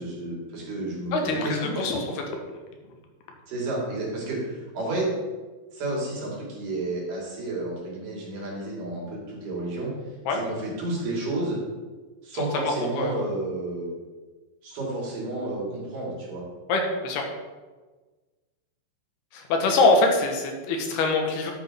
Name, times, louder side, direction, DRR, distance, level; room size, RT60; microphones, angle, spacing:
voice 1, 0.0-1.8 3.5-5.1 5.7-9.9 10.3-11.6 12.2-13.9 14.6-16.4, right 2 dB, 60° right, -5 dB, 4.2 m, -31 dB
voice 2, 1.1-2.1 10.3-10.4 12.5-13.1 16.7-17.2 19.3-21.5, left 3 dB, 80° left, 3 dB, 3.2 m, -24 dB
12.0 x 7.7 x 3.7 m, 1.3 s
omnidirectional pair, 4.5 m